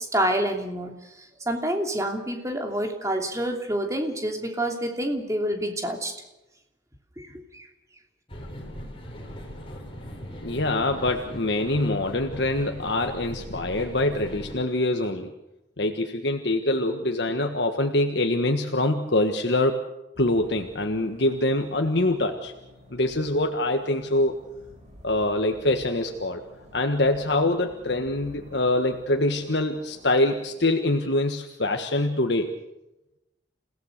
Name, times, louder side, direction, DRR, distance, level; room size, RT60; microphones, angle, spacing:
voice 1, 0.0-6.1 7.2-7.7, right 1 dB, 15° right, 3 dB, 3.0 m, -28 dB
sound 1, 8.3-14.5, equal, 30° left, 4.8 m, -39 dB
voice 2, 10.4-15.3 15.8-19.8 20.2-22.5 22.9-24.3 25.0-26.4 26.7-32.5, left 2 dB, 60° left, 4 dB, 1.5 m, -24 dB
sound 2, 20.1-30.5, left 1 dB, 40° right, 6.8 m, -51 dB
29.0 x 17.5 x 6.7 m, 0.95 s
head